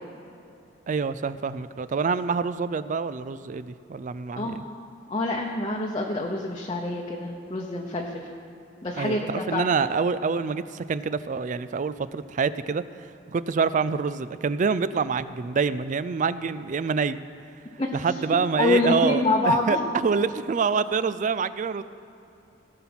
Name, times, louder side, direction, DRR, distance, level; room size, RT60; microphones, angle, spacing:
voice 1, 0.9-4.6 9.0-17.2 17.9-21.8, right 5 dB, 45° right, 15 dB, 0.4 m, -26 dB
voice 2, 5.1-8.3 8.8-9.7 17.8-17.9 18.6-19.8, left 2 dB, 30° left, -1 dB, 0.9 m, -26 dB
17.0 x 5.8 x 6.1 m, 2.8 s
head